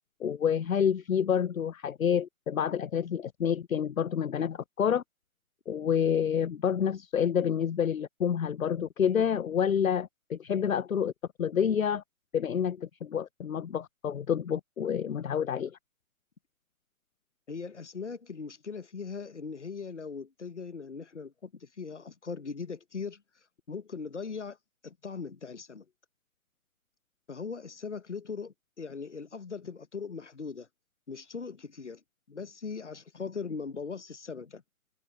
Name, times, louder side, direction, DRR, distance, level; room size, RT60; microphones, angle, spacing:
voice 1, 0.2-5.0 5.7-11.1 11.4-12.0 12.3-15.8, left 8 dB, 70° left, 0.6 m, -28 dB
voice 2, 17.5-23.2 23.7-24.6 24.8-25.8 27.3-30.7 31.1-32.0 32.3-34.6, left 5 dB, 55° left, 1.0 m, -39 dB
figure-of-eight pair, 175°, 43 cm